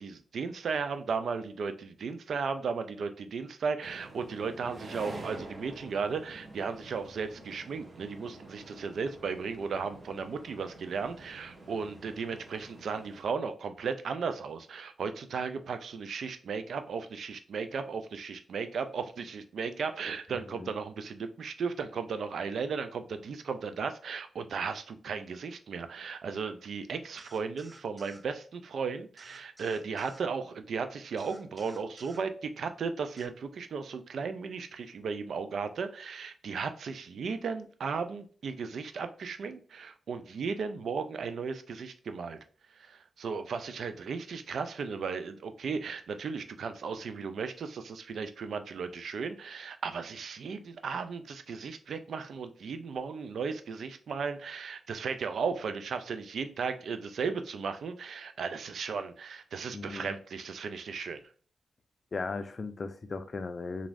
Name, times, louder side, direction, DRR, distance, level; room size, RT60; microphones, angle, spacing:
voice 1, 0.0-42.4 42.7-61.2, right 5 dB, 70° right, 0.3 m, -35 dB
sound 1, 3.8-13.2, right 2 dB, 50° right, 0.8 m, -48 dB
sound 2, 27.2-28.3 29.2-30.2 31.2-32.2 33.2-33.3, right 1 dB, 25° right, 0.6 m, -55 dB
voice 2, 59.7-60.1 62.1-63.9, left 3 dB, 50° left, 0.4 m, -37 dB
3.0 x 2.5 x 2.5 m
supercardioid pair, 45°, 0 cm